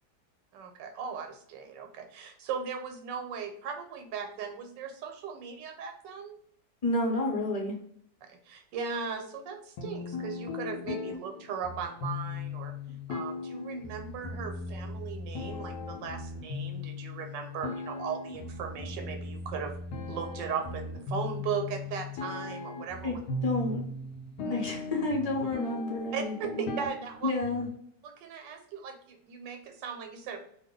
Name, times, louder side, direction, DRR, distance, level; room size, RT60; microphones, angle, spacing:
voice 1, 0.5-6.4 8.3-12.7 13.1-19.7 20.1-23.2 24.4-24.6 26.1-27.3 28.0-30.4, right 6 dB, 90° right, 5 dB, 1.3 m, -38 dB
voice 2, 6.8-7.7 23.0-23.1 23.4-23.8 24.5-26.6 27.2-27.7, left 2 dB, 40° left, -2 dB, 0.5 m, -30 dB
sound 1, 9.8-27.8, left 3 dB, 75° left, 1.1 m, -38 dB
2.8 x 2.3 x 3.6 m, 0.65 s
omnidirectional pair, 1.9 m